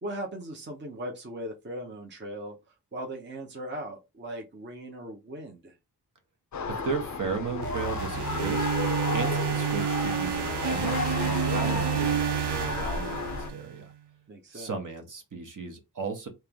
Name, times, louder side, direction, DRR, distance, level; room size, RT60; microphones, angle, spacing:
voice 1, 0.0-5.7 14.3-14.8, right 1 dB, 30° right, 0.8 m, -39 dB
sound 1, 6.5-13.5, left 5 dB, 45° left, 0.5 m, -33 dB
voice 2, 6.7-8.7 9.1-13.9 14.5-16.3, right 4 dB, 50° right, 1.0 m, -35 dB
sound 2, 7.6-13.8, right 9 dB, 85° right, 0.7 m, -29 dB
3.3 x 2.9 x 3.6 m
wide cardioid pair, 170°, 40 cm